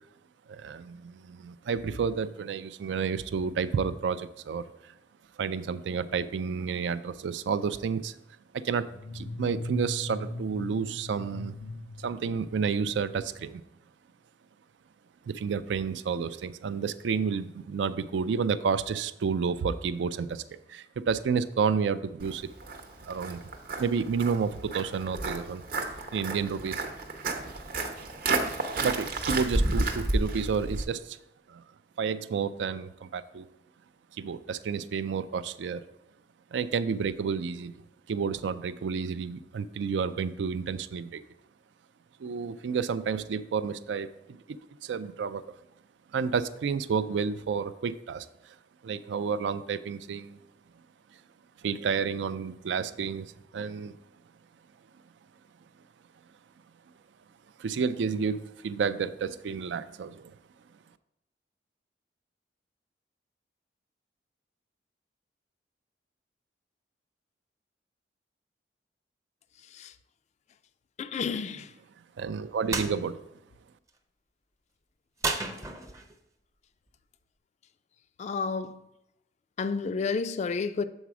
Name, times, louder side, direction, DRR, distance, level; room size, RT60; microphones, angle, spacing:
voice 1, 0.5-4.7 5.4-8.2 8.5-8.9 9.1-11.5 12.0-13.6 15.3-20.4 20.7-22.5 23.0-23.4 23.8-25.6 26.1-26.8 28.8-31.2 31.5-31.6 32.0-33.5 34.2-35.8 36.5-37.7 38.1-41.2 42.2-45.5 46.1-48.6 48.8-50.4 51.6-53.9 57.6-60.3 71.3-71.4 72.2-73.2, right 6 dB, 85° right, 0.4 m, -30 dB
sound 1, 8.9-13.0, left 2 dB, 70° left, 0.7 m, -39 dB
Walk footsteps, 22.2-30.8, right 2 dB, 55° right, 0.8 m, -32 dB
voice 2, 71.0-71.7 78.2-78.8 79.6-80.9, left 5 dB, 40° left, 0.3 m, -30 dB
sound 2, 72.7-72.9 75.2-76.2, right 3 dB, 20° right, 0.5 m, -31 dB
7.1 x 4.1 x 4.7 m
head